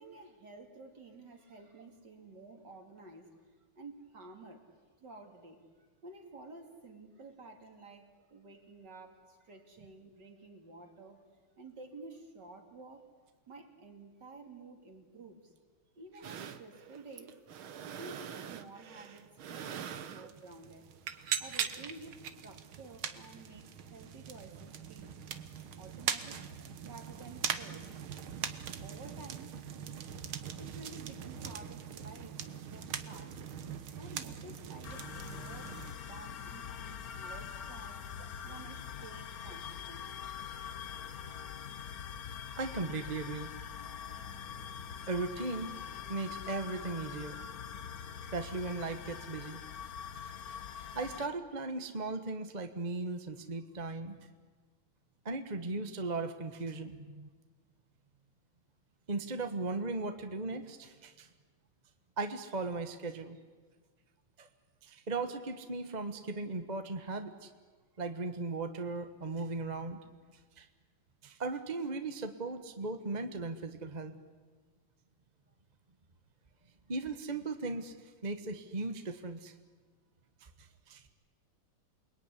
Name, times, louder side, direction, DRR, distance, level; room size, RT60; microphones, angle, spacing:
voice 1, 0.0-3.4 3.8-4.7 5.0-11.2 11.6-13.1 13.5-15.5 15.9-20.9 21.4-25.1 25.8-26.4 26.8-27.9 28.4-29.6 30.6-33.4 33.8-38.1 38.4-40.2, right 3 dB, 50° right, 4 dB, 3.4 m, -52 dB
sound 1, 16.2-35.9, right 8 dB, 70° right, 2.0 m, -41 dB
sound 2, 34.8-51.3, left 8 dB, 50° left, 1.3 m, -44 dB
voice 2, 42.6-43.5 45.1-45.7 46.1-47.4 48.3-49.6 50.9-54.2 55.2-57.3 59.1-61.3 62.2-63.4 64.4-64.5 64.8-67.5 68.0-70.0 70.6-70.7 71.2-74.2 76.9-79.5 80.6-81.1, right 3 dB, 25° right, 7 dB, 1.1 m, -37 dB
28.5 x 21.0 x 9.9 m, 1.5 s
omnidirectional pair, 2.4 m